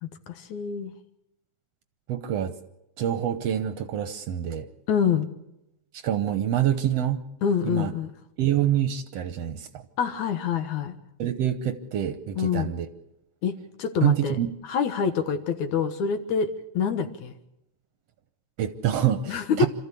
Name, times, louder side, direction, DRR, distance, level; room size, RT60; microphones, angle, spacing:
voice 1, 0.0-0.9 4.9-5.3 7.4-8.1 10.0-10.9 12.4-12.7 13.4-14.4 14.7-17.3 19.3-19.7, left 7 dB, 75° left, 9 dB, 2.7 m, -26 dB
voice 2, 2.1-2.5 3.0-4.7 6.0-7.2 7.6-7.9 8.4-9.8 11.2-12.9 14.0-14.5 18.6-19.7, right 11 dB, 65° right, 11 dB, 1.8 m, -26 dB
27.0 x 14.0 x 8.4 m, 0.87 s
omnidirectional pair, 3.5 m